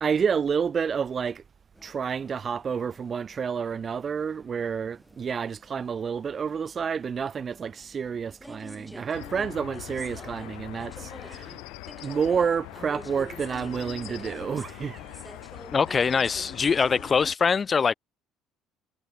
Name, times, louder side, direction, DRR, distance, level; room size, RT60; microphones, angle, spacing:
voice 1, 0.0-1.4 1.8-11.5 12.0-15.0, right 6 dB, 40° right, 1.4 m, -29 dB
sound 1, 1.7-17.3, left 1 dB, 5° left, 6.5 m, -48 dB
sound 2, 9.1-17.3, left 30 dB, 70° left, 4.4 m, -42 dB
voice 2, 15.7-17.9, left 5 dB, 35° left, 0.6 m, -23 dB
hypercardioid pair, 60°, 0 cm